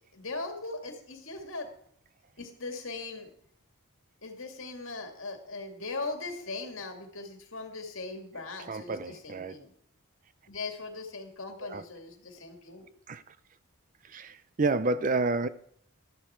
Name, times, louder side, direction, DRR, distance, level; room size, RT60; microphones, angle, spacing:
voice 1, 0.1-1.7 2.4-3.3 4.2-9.7 10.5-12.9, left 3 dB, 60° left, 2.4 m, -39 dB
voice 2, 8.6-9.6 11.6-11.8 13.1-13.4 14.0-15.5, right 3 dB, 35° right, 0.5 m, -30 dB
13.0 x 11.0 x 4.5 m
head